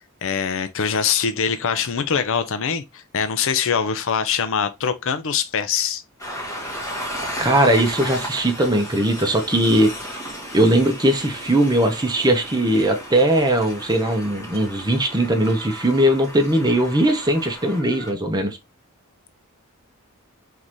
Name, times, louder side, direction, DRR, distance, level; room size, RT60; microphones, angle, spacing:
voice 1, 0.2-6.0, left 6 dB, 65° left, 0.6 m, -23 dB
Train, 6.2-18.1, equal, 15° left, 2.0 m, -34 dB
voice 2, 7.4-10.2 10.5-18.6, right 1 dB, 20° right, 0.9 m, -19 dB
3.9 x 3.9 x 3.0 m
head